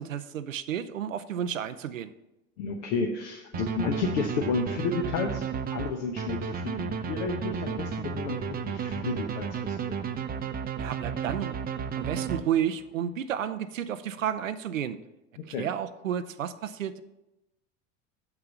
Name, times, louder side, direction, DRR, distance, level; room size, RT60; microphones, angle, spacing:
voice 1, 0.0-2.1 10.8-11.6 12.0-15.0 15.5-17.0, right 9 dB, 90° right, 12 dB, 0.6 m, -31 dB
voice 2, 2.6-5.4 5.7-10.0 15.5-15.6, left 4 dB, 65° left, 1 dB, 1.0 m, -31 dB
sound 1, 3.5-12.9, right 6 dB, 25° right, 0.6 m, -33 dB
6.5 x 5.9 x 7.0 m, 0.98 s
hypercardioid pair, 75°, 38 cm